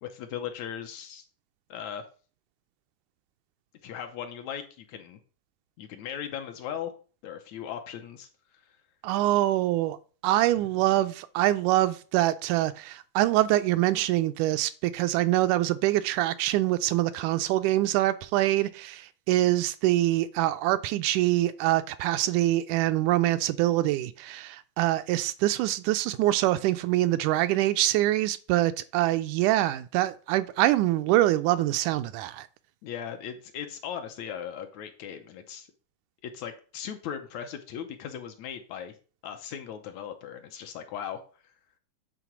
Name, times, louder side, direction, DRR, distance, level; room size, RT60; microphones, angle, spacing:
voice 1, 0.0-1.2 1.7-2.0 3.8-5.2 5.8-6.9 7.2-8.3 8.5-8.7 32.8-35.7 36.2-38.9 39.2-41.2, left 9 dB, 75° left, 1.9 m, -38 dB
voice 2, 9.0-10.0 10.2-32.5, right 15 dB, 80° right, 1.9 m, -25 dB
9.2 x 3.7 x 6.0 m
omnidirectional pair, 3.7 m